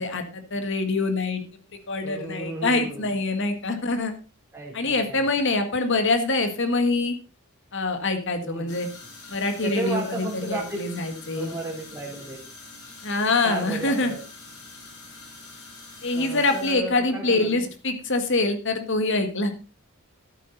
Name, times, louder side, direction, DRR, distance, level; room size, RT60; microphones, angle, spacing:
voice 1, 0.0-1.4 1.9-4.1 4.7-7.2 7.7-8.9 9.3-11.5 13.0-14.1 16.0-19.5, left 3 dB, 55° left, 7 dB, 1.8 m, -25 dB
voice 2, 2.0-3.2 4.5-5.3 8.4-8.7 9.6-10.8 11.3-12.4 13.4-14.2 16.1-17.7, right 2 dB, 10° right, -3 dB, 3.7 m, -33 dB
sound 1, 8.7-16.7, left 3 dB, 85° left, 4.4 m, -45 dB
13.5 x 8.5 x 4.0 m, 0.33 s
head